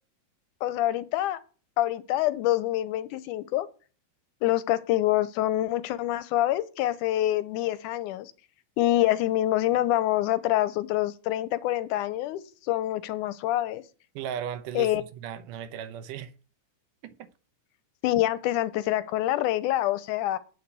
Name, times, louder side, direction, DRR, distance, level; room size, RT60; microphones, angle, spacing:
voice 1, 0.6-1.4 1.8-3.7 4.4-8.3 8.8-13.8 14.8-15.0 18.0-20.4, left 14 dB, 90° left, 2.2 m, -26 dB
voice 2, 14.1-16.3 17.0-17.3, right 9 dB, 90° right, 2.5 m, -36 dB
8.7 x 6.0 x 6.9 m
omnidirectional pair, 3.5 m